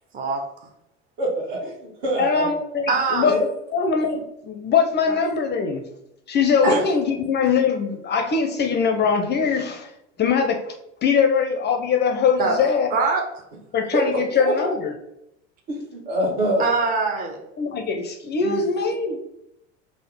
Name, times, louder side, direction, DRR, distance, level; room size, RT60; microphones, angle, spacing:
voice 1, 1.2-2.5 3.2-3.4 13.9-14.0 14.4-14.7 15.7-16.6, right 1 dB, 65° right, -2 dB, 1.3 m, -25 dB
voice 2, 2.2-3.4 3.7-5.8 6.3-9.9 10.2-10.7 11.0-12.9 13.7-14.9 17.6-19.2, left 5 dB, 30° left, 5 dB, 0.4 m, -22 dB
voice 3, 2.9-3.3 6.6-6.8 12.4-12.6 12.9-13.2 16.6-17.4 18.4-18.6, right 4 dB, 25° right, 1 dB, 0.6 m, -22 dB
3.5 x 2.0 x 3.5 m, 0.81 s
hypercardioid pair, 80°, 35 cm